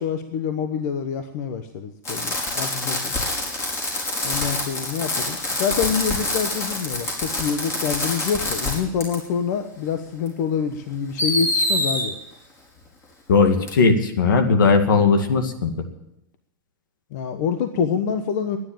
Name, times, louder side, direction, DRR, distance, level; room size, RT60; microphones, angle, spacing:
voice 1, 0.0-3.1 4.2-12.2 17.1-18.6, left 7 dB, 60° left, 8 dB, 1.1 m, -26 dB
Fireworks, 2.1-8.8 9.0-9.2 10.3-10.4 11.2-12.0 13.7-13.8, left 2 dB, 25° left, 4.8 m, -26 dB
voice 2, 13.3-15.7, left 4 dB, 85° left, 8 dB, 2.0 m, -18 dB
12.0 x 9.8 x 9.1 m, 0.87 s
hypercardioid pair, 130°, 10 cm